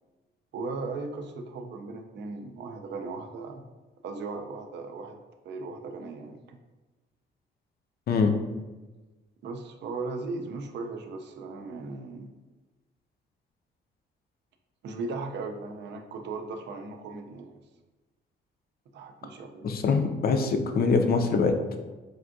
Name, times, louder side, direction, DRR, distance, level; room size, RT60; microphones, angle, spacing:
voice 1, 0.5-3.6 4.0-5.2 5.5-6.6 9.4-12.3 14.8-17.6 18.9-19.7, right 3 dB, 60° right, 5 dB, 0.4 m, -37 dB
voice 2, 19.6-21.8, left 4 dB, 50° left, 5 dB, 0.4 m, -24 dB
3.4 x 2.5 x 2.5 m, 1.2 s
cardioid pair, 90°, 20 cm